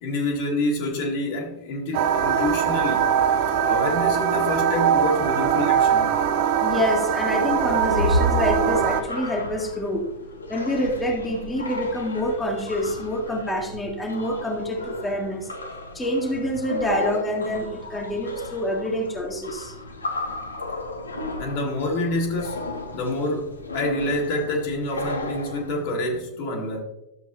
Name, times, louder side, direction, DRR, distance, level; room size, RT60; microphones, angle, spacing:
voice 1, 0.0-3.0 3.6-6.2 21.4-22.7 22.9-26.8, left 1 dB, 45° left, 1.9 m, -27 dB
sound 1, 1.9-9.0, right 8 dB, 50° right, 0.7 m, -22 dB
voice 2, 6.6-10.0 10.5-15.5 15.9-19.7, left 1 dB, 10° left, 1.6 m, -26 dB
sound 2, 7.4-26.2, left 1 dB, 75° left, 1.1 m, -33 dB
12.5 x 7.2 x 2.8 m
figure-of-eight pair, 90°, 0 cm